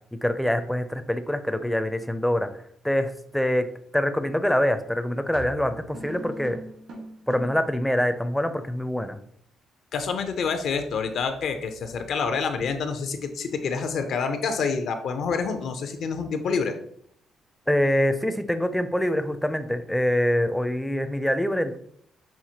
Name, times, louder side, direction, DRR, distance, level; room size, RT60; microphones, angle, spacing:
voice 1, 0.1-2.5 2.8-3.7 3.9-6.6 7.3-9.2 17.7-21.8, equal, 5° left, 9 dB, 0.4 m, -25 dB
sound 1, 5.3-7.7, equal, 80° right, 1.5 m, -40 dB
voice 2, 9.9-16.7, left 5 dB, 70° left, 7 dB, 0.5 m, -27 dB
5.7 x 2.5 x 2.8 m, 0.65 s
cardioid pair, 90°, 0 cm